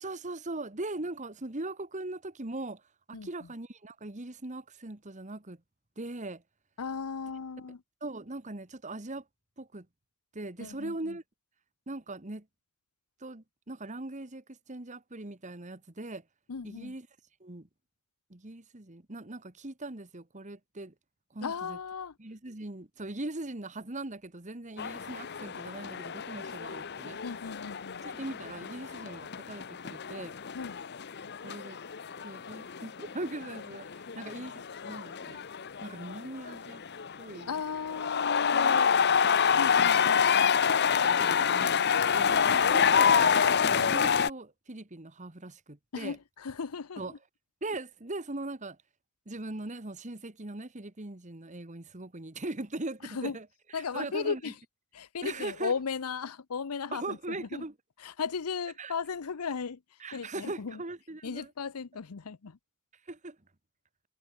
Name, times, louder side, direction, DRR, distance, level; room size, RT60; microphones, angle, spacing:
voice 1, 0.0-2.8 3.1-5.6 6.0-6.4 8.0-9.2 9.6-9.9 10.3-11.2 11.9-12.4 13.2-16.2 16.6-17.1 17.4-17.7 18.3-20.9 21.3-21.8 22.2-27.2 28.0-30.3 31.4-31.8 32.2-35.4 35.8-36.8 37.2-37.5 38.5-40.0 41.0-43.3 43.6-46.2 47.0-47.1 47.6-48.8 49.3-53.5 53.7-54.5 55.2-55.7 56.9-57.7 58.8-58.9 60.0-61.5 63.1-63.4, right 2 dB, 35° right, 1.5 m, -40 dB
voice 2, 3.1-3.5 6.8-7.8 10.6-11.2 16.5-16.9 21.4-22.1 27.2-28.0 30.5-30.8 37.5-38.9 39.6-40.6 45.9-47.2 53.0-53.4 53.7-54.5 54.9-57.7 58.0-59.8 60.1-60.8 61.2-62.6, left 5 dB, 85° left, 0.7 m, -36 dB
sound 1, 24.8-44.3, left 7 dB, 50° left, 0.8 m, -28 dB
head